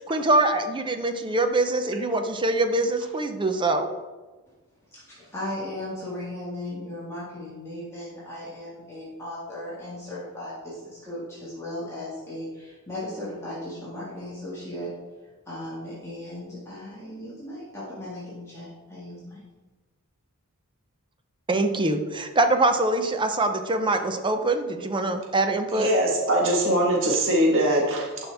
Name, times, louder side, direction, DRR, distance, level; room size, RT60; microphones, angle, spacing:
voice 1, 0.0-3.9 21.5-25.9, right 2 dB, 20° right, 7 dB, 0.6 m, -24 dB
voice 2, 4.9-14.9 15.5-19.4, left 1 dB, 10° left, -9 dB, 2.0 m, -36 dB
voice 3, 25.7-28.2, right 1 dB, 60° right, -2 dB, 1.7 m, -22 dB
11.0 x 5.4 x 3.5 m, 1.2 s
head